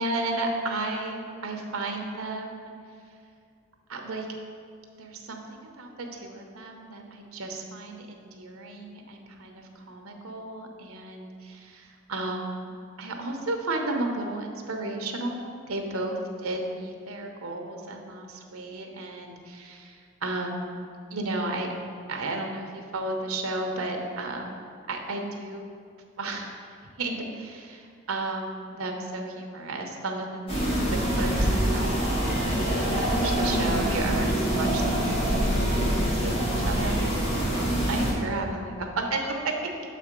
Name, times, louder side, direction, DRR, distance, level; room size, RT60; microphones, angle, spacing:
voice 1, 0.0-2.7 3.9-4.3 5.0-12.7 13.0-20.8 21.1-21.7 22.1-25.7 26.2-26.5 27.0-30.8 31.0-31.3 31.7-35.4 35.7-39.5, right 2 dB, 90° right, 3 dB, 0.9 m, -33 dB
sound 1, 30.5-38.1, right 1 dB, 25° left, 1.6 m, -25 dB
6.6 x 4.2 x 5.1 m, 2.3 s
head